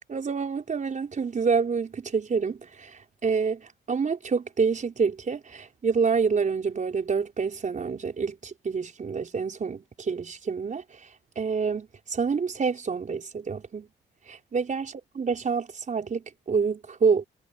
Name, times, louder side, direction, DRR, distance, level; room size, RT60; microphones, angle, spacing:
voice 1, 0.1-11.0 11.3-13.9 14.3-17.2, right 5 dB, 40° right, 5.1 m, -27 dB
cardioid pair, 90°, 20 cm